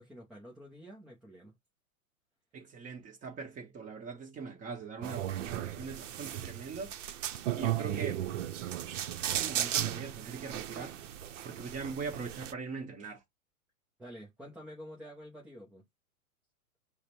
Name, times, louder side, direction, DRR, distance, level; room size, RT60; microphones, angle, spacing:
voice 1, 0.0-1.6 14.0-15.8, equal, ahead, 0.4 m, -49 dB
voice 2, 2.5-6.9 7.5-8.2 9.2-11.0 11.4-13.2, right 5 dB, 20° right, 1.0 m, -41 dB
sound 1, 5.0-12.5, right 11 dB, 60° right, 0.7 m, -35 dB
4.8 x 2.2 x 4.3 m
hypercardioid pair, 135°, 42 cm